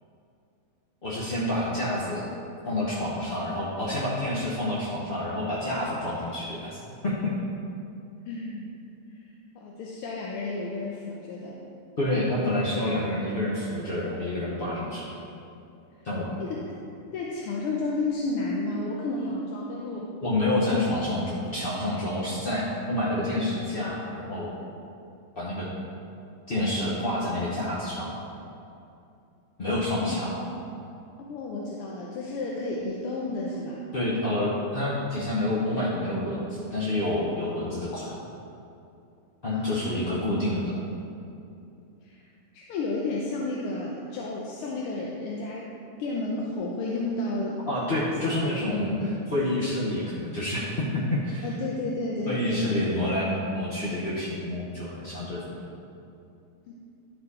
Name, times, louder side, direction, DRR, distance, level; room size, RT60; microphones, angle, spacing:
voice 1, 1.0-2.3 2.7-7.3 12.0-15.1 16.0-16.3 20.2-24.5 25.4-25.7 26.5-28.1 29.6-30.4 33.9-38.1 39.4-40.7 47.7-48.9 49.3-51.5 52.3-55.6, left 1 dB, 45° left, -7 dB, 0.7 m, -28 dB
voice 2, 8.3-8.7 9.5-11.6 16.4-16.6 17.1-20.1 20.7-20.9 30.0-30.2 31.3-33.8 39.5-40.0 42.0-42.3 42.5-45.7 46.0-47.6 48.2-49.3 51.4-52.8 56.7-56.8, left 2 dB, 85° left, -3 dB, 1.7 m, -32 dB
11.5 x 4.5 x 4.1 m, 2.6 s
omnidirectional pair, 2.4 m